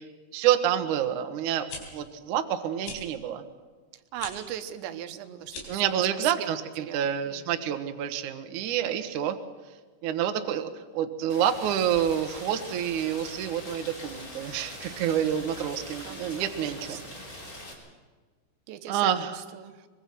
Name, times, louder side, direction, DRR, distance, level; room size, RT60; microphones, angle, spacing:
voice 1, 0.3-1.7 1.9-3.4 5.7-9.4 10.0-17.0 18.9-19.3, right 10 dB, 65° right, 7 dB, 2.1 m, -28 dB
sound 1, 1.5-1.8 2.8-3.0 4.1-4.3 5.4-5.8, left 4 dB, 70° left, 5.7 m, -39 dB
voice 2, 4.1-5.9 6.4-6.5 6.8-7.6 15.4-15.7 16.0-17.3 18.7-19.9, right 11 dB, 80° right, 10 dB, 3.3 m, -40 dB
Rain, 11.3-17.7, left 1 dB, 20° left, 3.8 m, -42 dB
24.0 x 22.0 x 6.0 m, 1.4 s
omnidirectional pair, 5.1 m